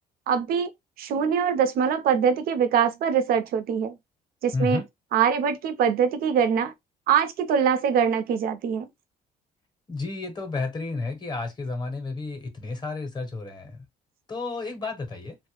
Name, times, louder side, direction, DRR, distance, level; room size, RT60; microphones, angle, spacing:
voice 1, 0.3-0.7 1.0-3.9 4.4-4.8 5.1-6.7 7.1-8.9, right 7 dB, 60° right, 0.5 m, -23 dB
voice 2, 4.5-4.8 9.9-13.8 14.3-15.4, left 3 dB, 25° left, 0.7 m, -31 dB
2.1 x 2.0 x 2.8 m
cardioid pair, 110°, 17 cm